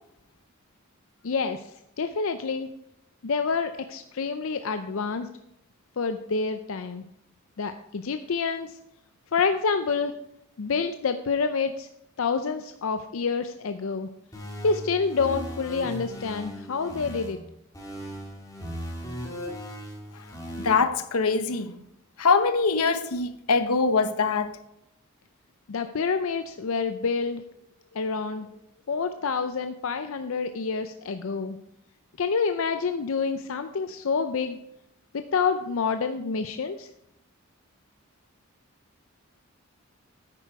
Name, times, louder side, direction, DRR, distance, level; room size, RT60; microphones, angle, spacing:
voice 1, 1.2-1.7 2.0-2.7 3.2-5.3 6.0-7.0 7.6-8.8 9.3-10.1 10.6-11.9 12.2-14.1 14.6-17.4 25.7-27.4 27.9-28.5 28.9-31.6 32.2-34.6 35.1-36.9, left 5 dB, 65° left, 0.5 m, -28 dB
sound 1, 14.3-17.3 17.7-20.8, equal, 15° left, 2.3 m, -37 dB
voice 2, 20.6-21.7 22.2-24.6, left 4 dB, 85° left, 0.9 m, -23 dB
9.9 x 9.0 x 4.7 m
head